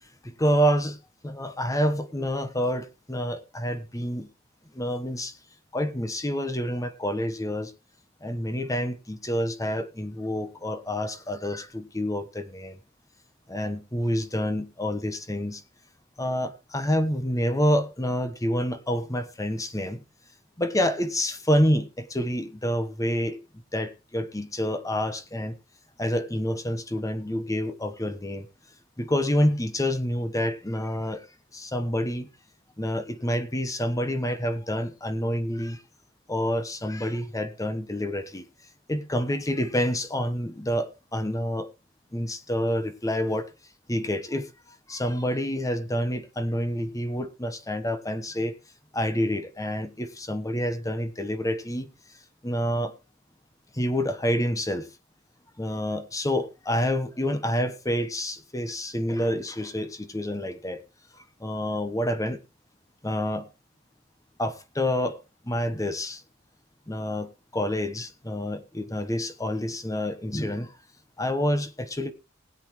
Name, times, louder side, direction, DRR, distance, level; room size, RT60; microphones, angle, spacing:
voice 1, 0.2-1.0 1.2-4.3 4.7-5.4 5.7-7.7 8.2-12.8 13.5-15.6 16.2-20.0 20.6-23.4 23.7-25.6 26.0-28.5 29.0-31.3 31.5-32.3 32.8-35.8 36.3-38.4 38.9-41.7 42.1-43.5 43.9-44.5 44.9-48.6 48.9-51.9 52.4-52.9 53.7-54.9 55.6-60.8 61.1-62.4 63.0-63.5 64.4-65.2 65.4-66.2 66.9-70.7 71.2-72.1, equal, 15° left, 1.1 m, -28 dB
20.0 x 8.2 x 3.1 m
head